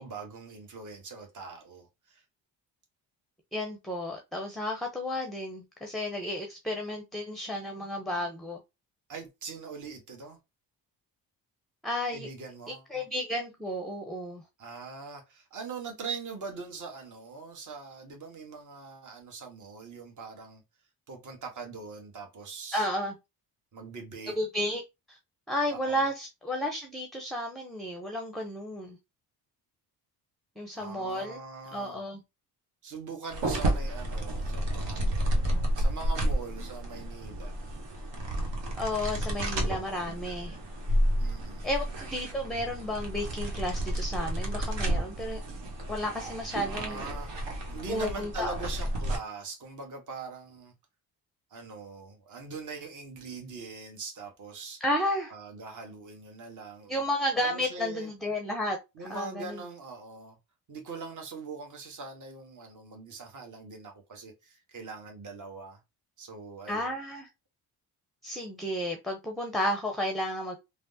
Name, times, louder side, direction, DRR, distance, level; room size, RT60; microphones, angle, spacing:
voice 1, 0.0-2.2 9.1-10.4 12.1-13.0 14.6-20.6 21.1-22.9 23.7-24.3 25.7-26.0 30.7-32.0 32.8-37.6 41.2-41.7 46.6-47.3 47.7-50.7 51.5-54.8 55.3-57.0 57.4-58.1 59.0-60.4 60.7-65.8 66.2-66.9, right 4 dB, 40° right, 1.1 m, -42 dB
voice 2, 3.5-8.6 11.8-12.3 12.7-14.4 22.7-23.1 24.4-24.8 25.1-25.2 25.5-29.0 30.6-31.4 31.7-32.2 38.7-40.6 41.6-41.8 42.1-45.4 45.9-47.0 47.9-48.6 54.8-55.3 56.9-58.8 59.1-59.6 66.7-67.3 68.2-70.5, left 1 dB, ahead, 0.6 m, -32 dB
sound 1, 33.3-49.2, right 1 dB, 65° right, 1.1 m, -31 dB
3.3 x 2.0 x 2.6 m
hypercardioid pair, 55°, 46 cm